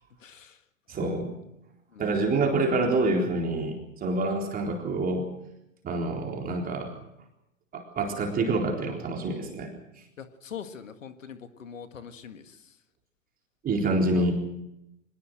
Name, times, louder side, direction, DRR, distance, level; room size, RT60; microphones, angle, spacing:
voice 1, 0.2-0.6 1.0-1.1 1.9-2.4 10.2-12.6 14.1-14.3, left 7 dB, 70° left, 9 dB, 2.0 m, -43 dB
voice 2, 0.9-1.3 2.0-5.3 5.8-6.9 7.7-9.7 13.6-14.3, right 2 dB, 20° right, 1 dB, 4.0 m, -27 dB
25.0 x 20.0 x 6.4 m, 0.86 s
figure-of-eight pair, 100°, 40 cm